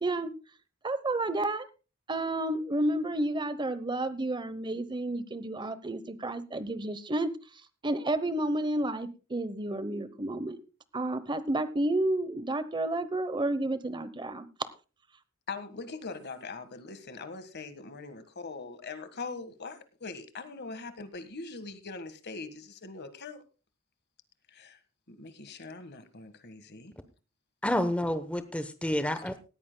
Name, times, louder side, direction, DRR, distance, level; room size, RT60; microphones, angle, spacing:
voice 1, 0.8-1.6 2.1-7.3 7.8-10.6 10.9-14.5, right 1 dB, 20° right, 14 dB, 0.9 m, -31 dB
voice 2, 15.5-23.4 24.5-24.8 25.1-26.9 29.1-29.2, left 4 dB, 50° left, 11 dB, 1.6 m, -42 dB
voice 3, 27.6-29.4, left 1 dB, 5° left, 10 dB, 0.9 m, -29 dB
18.5 x 14.5 x 2.2 m, 0.33 s
head